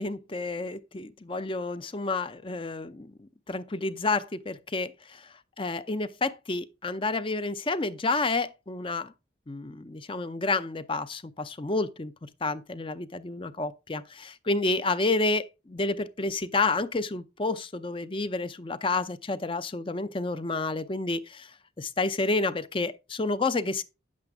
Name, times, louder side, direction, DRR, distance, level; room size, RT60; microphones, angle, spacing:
voice 1, 0.0-3.1 3.5-5.3 5.6-9.1 9.5-21.5 21.8-23.8, left 3 dB, 25° left, 0.6 m, -30 dB
9.8 x 7.5 x 3.5 m
head